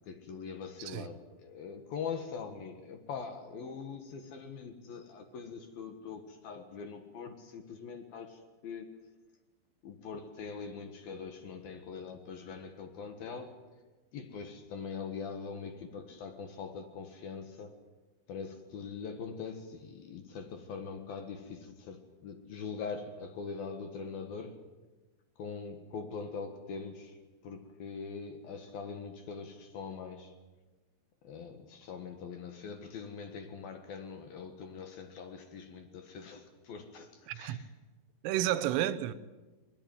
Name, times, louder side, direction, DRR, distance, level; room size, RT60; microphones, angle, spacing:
voice 1, 0.1-8.9 9.8-13.5 14.1-17.7 18.3-24.6 25.4-27.2 27.4-30.3 31.2-37.7 38.3-38.4, left 5 dB, 60° left, 2.8 m, -42 dB
voice 2, 37.3-37.6 38.2-39.1, right 13 dB, 85° right, 3.5 m, -31 dB
22.0 x 21.5 x 9.3 m
omnidirectional pair, 5.8 m